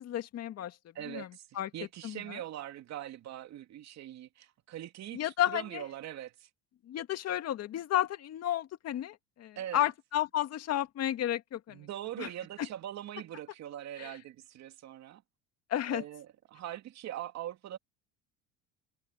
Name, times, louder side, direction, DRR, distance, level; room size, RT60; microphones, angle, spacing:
voice 1, 0.0-0.8 1.1-1.3 1.6-1.7 2.0-2.4 5.1-5.8 6.9-11.8 12.2-12.3 14.0-14.1 15.7-16.0, left 12 dB, 50° left, 2.1 m, -32 dB
voice 2, 0.9-6.5 9.6-9.9 11.7-15.2 15.9-17.8, right 12 dB, 50° right, 2.6 m, -42 dB
supercardioid pair, 110°, 34 cm